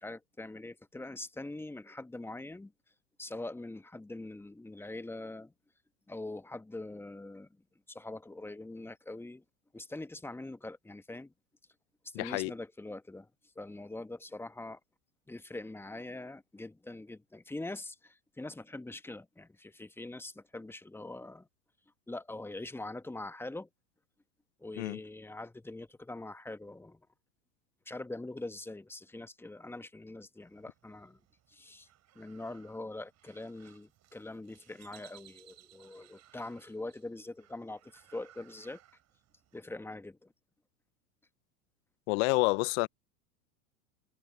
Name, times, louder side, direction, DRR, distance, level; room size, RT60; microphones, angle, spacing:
voice 1, 0.0-2.7 3.2-5.5 6.1-7.5 7.9-9.4 9.7-11.3 12.0-13.3 13.5-14.8 15.3-21.5 22.1-23.7 24.6-27.0 27.9-31.2 31.5-31.9 32.1-38.8 39.5-40.3, left 2 dB, 5° left, 1.2 m, -43 dB
voice 2, 12.1-12.5 24.8-25.0 42.1-42.9, left 27 dB, 55° left, 0.7 m, -28 dB
sound 1, 30.4-39.6, right 13 dB, 40° right, 5.5 m, -62 dB
hypercardioid pair, 95°, 42 cm